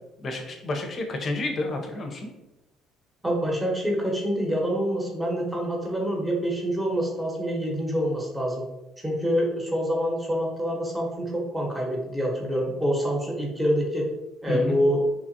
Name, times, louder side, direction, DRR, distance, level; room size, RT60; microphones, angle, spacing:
voice 1, 0.2-2.3 14.5-14.8, left 2 dB, 45° left, 3 dB, 0.6 m, -30 dB
voice 2, 3.2-8.6 9.0-14.0 14.4-15.0, equal, 10° right, -2 dB, 0.9 m, -26 dB
2.9 x 2.4 x 2.7 m, 0.96 s
supercardioid pair, 70°, 0 cm